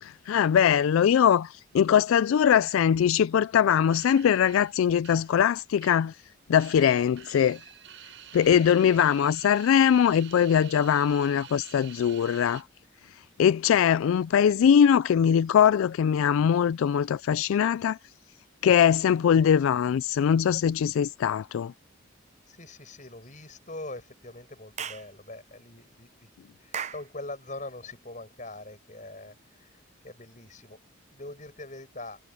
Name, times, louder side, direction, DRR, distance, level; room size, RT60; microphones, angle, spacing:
voice 1, 0.0-6.2 6.5-7.6 8.3-12.6 13.4-18.0 18.6-21.7, left 8 dB, 75° left, 0.3 m, -22 dB
sound 1, 3.9-6.3 6.6-12.6, right 10 dB, 60° right, 6.4 m, -48 dB
voice 2, 22.5-26.3 26.6-29.8 30.0-30.8 31.1-32.2, left 2 dB, 35° left, 7.9 m, -42 dB
Clapping / Chirp tweet, 24.8-25.1 26.7-27.1, right 7 dB, 35° right, 0.6 m, -35 dB
head